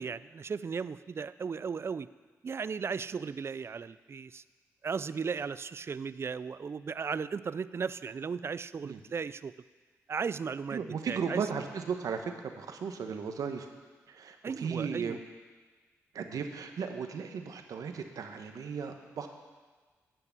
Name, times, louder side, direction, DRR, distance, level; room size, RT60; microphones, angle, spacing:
voice 1, 0.0-2.1 2.4-4.4 4.8-9.5 10.1-11.4 14.4-15.2, right 5 dB, 45° right, 16 dB, 0.4 m, -36 dB
voice 2, 10.7-13.7 14.1-15.2 16.1-19.3, right 6 dB, 75° right, 6 dB, 1.1 m, -36 dB
11.0 x 5.8 x 8.4 m, 1.4 s
cardioid pair, 60°, 6 cm